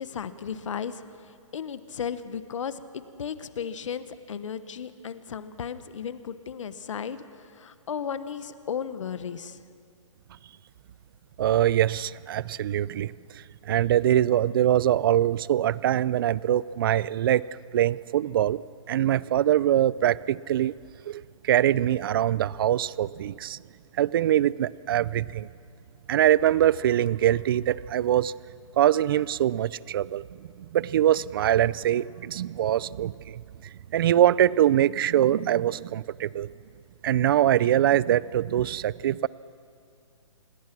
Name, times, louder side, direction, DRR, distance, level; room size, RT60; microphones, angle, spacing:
voice 1, 0.0-9.6, left 7 dB, 65° left, 12 dB, 1.3 m, -35 dB
voice 2, 11.4-13.1 13.7-17.4 17.7-18.6 18.9-20.7 21.1-23.6 24.0-25.5 26.1-28.3 28.8-33.4 33.9-36.5 37.0-39.3, right 11 dB, 40° right, 21 dB, 0.5 m, -23 dB
27.0 x 21.5 x 6.1 m, 2.3 s
hypercardioid pair, 155°, 17 cm